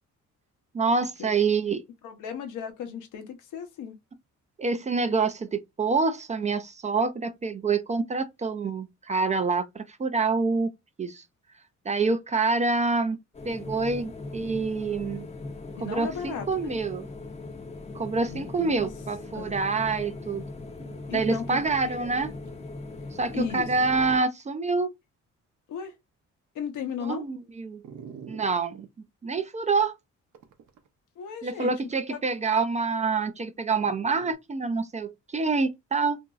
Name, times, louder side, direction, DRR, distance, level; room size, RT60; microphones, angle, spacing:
voice 1, 0.7-1.8 4.6-10.7 11.0-11.2 11.9-13.2 13.4-15.3 15.8-17.1 17.9-20.4 21.1-22.3 23.1-24.9 27.0-27.8 28.3-28.9 29.2-30.0 31.4-36.2, right 4 dB, 25° right, 0.3 m, -27 dB
voice 2, 2.0-4.0 15.8-16.8 18.3-18.9 19.3-19.6 21.1-22.1 23.3-23.7 25.7-25.9 26.5-27.2 31.2-31.7 32.1-32.2, left 7 dB, 80° left, 0.8 m, -36 dB
sound 1, 13.3-24.2, left 3 dB, 20° left, 0.6 m, -40 dB
Dog, 20.8-21.0 21.7-21.8 22.5-22.6 23.3-23.9 24.4-24.5 27.8-28.9 30.3-30.9 33.8-34.3, right 7 dB, 75° right, 0.7 m, -45 dB
2.9 x 2.6 x 2.3 m
cardioid pair, 90°, 30 cm